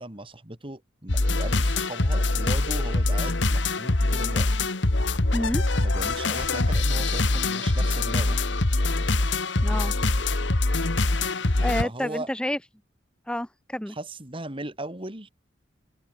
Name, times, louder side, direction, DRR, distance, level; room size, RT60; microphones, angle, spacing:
voice 1, 0.0-4.5 5.8-8.4 11.8-12.3 13.9-15.3, right 1 dB, 30° right, 2.9 m, -37 dB
sound 1, 1.1-11.8, left 2 dB, 70° left, 1.6 m, -24 dB
voice 2, 5.3-5.6 9.6-9.9 11.6-12.6 13.3-14.0, left 1 dB, 5° left, 0.8 m, -29 dB
open air
head